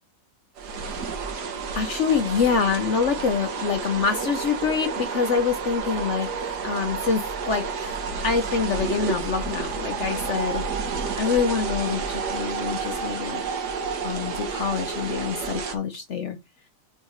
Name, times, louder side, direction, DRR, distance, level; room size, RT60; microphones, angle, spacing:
sound 1, 0.6-15.8, right 5 dB, 65° right, 1.5 m, -30 dB
voice 1, 0.9-1.2 1.7-10.6 11.2-13.4 14.0-16.4, left 5 dB, 65° left, 0.7 m, -26 dB
5.0 x 4.5 x 4.4 m
omnidirectional pair, 2.0 m